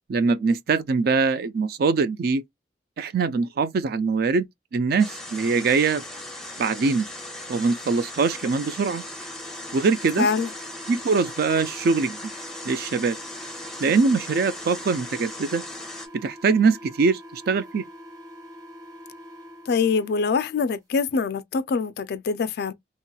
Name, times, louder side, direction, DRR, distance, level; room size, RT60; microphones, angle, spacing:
voice 1, 0.1-2.4 3.0-4.4 4.7-6.0 6.6-7.1 7.5-9.0 9.7-10.3 10.9-12.3 12.6-13.2 13.8-15.6 16.1-17.8, right 4 dB, 60° right, 0.4 m, -22 dB
sound 1, 5.0-16.1, left 1 dB, 5° left, 0.6 m, -38 dB
sound 2, 8.1-20.2, equal, 20° right, 1.0 m, -44 dB
voice 2, 10.2-10.5 19.7-22.7, left 5 dB, 60° left, 0.3 m, -24 dB
2.9 x 2.9 x 2.2 m
head